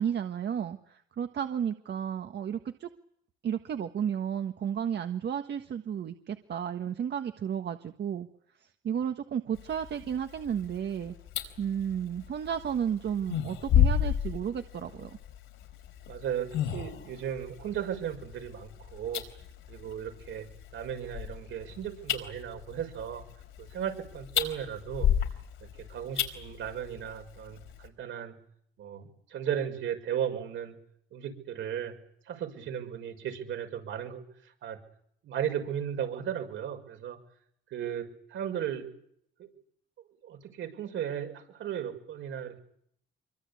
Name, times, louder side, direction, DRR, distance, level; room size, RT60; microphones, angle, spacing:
voice 1, 0.0-2.9 3.4-8.3 8.8-11.1 11.6-15.1, right 8 dB, 60° right, 7 dB, 1.5 m, -32 dB
sound 1, 9.5-27.9, left 9 dB, 90° left, 4.5 m, -33 dB
voice 2, 16.1-19.2 19.7-20.5 20.7-23.2 23.6-25.1 25.9-28.3 28.8-30.7 31.1-31.9 32.3-34.2 34.6-34.8 35.2-37.2 37.7-38.9 39.4-39.5 40.2-42.6, right 9 dB, 80° right, 5 dB, 6.0 m, -35 dB
25.5 x 24.0 x 8.6 m, 0.69 s
cardioid pair, 90°, 20 cm